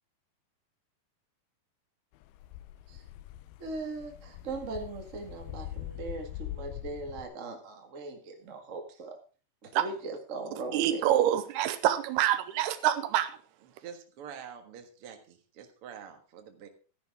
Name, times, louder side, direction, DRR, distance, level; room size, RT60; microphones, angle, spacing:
sound 1, 2.2-7.3, left 14 dB, 80° left, 2.6 m, -43 dB
voice 1, 3.6-9.2 9.6-11.1, right 3 dB, 35° right, 1.2 m, -39 dB
voice 2, 10.7-13.3, right 12 dB, 85° right, 2.8 m, -26 dB
voice 3, 13.6-16.7, right 8 dB, 55° right, 1.7 m, -47 dB
13.0 x 10.5 x 3.6 m
omnidirectional pair, 4.5 m